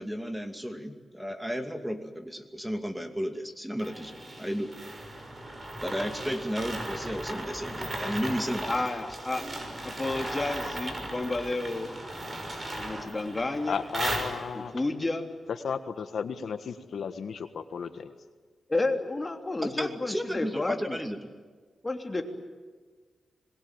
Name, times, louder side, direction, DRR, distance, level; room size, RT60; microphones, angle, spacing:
voice 1, 0.0-4.1 4.4-4.7 5.8-8.9 19.6-21.3, equal, 5° right, 6 dB, 2.5 m, -33 dB
sound 1, 3.8-14.8, right 1 dB, 30° right, 6.3 m, -37 dB
voice 2, 8.7-9.4 9.8-11.9 12.8-13.8 14.5-15.3 18.7-21.0 21.8-22.2, left 2 dB, 25° left, 4 dB, 3.2 m, -31 dB
voice 3, 13.7-14.7 15.6-18.1, left 6 dB, 75° left, 9 dB, 1.4 m, -34 dB
25.5 x 21.5 x 9.1 m, 1.5 s
cardioid pair, 85°, 0 cm